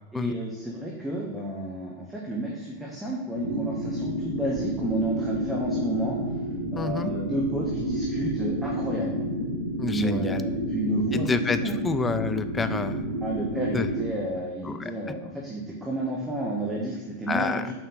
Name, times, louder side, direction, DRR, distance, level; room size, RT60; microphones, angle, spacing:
voice 1, 0.1-6.2 6.7-9.1 9.8-11.8 13.2-17.7, right 1 dB, 5° right, -4 dB, 1.1 m, -31 dB
sound 1, 3.3-14.1, right 1 dB, 85° right, 0.9 m, -30 dB
voice 2, 6.8-7.1 9.8-10.4 11.1-11.6 11.8-13.0 13.7-13.9 14.6-14.9 17.3-17.6, left 4 dB, 15° left, 10 dB, 0.4 m, -28 dB
6.3 x 4.3 x 3.9 m, 1.2 s
figure-of-eight pair, 90°, 0 cm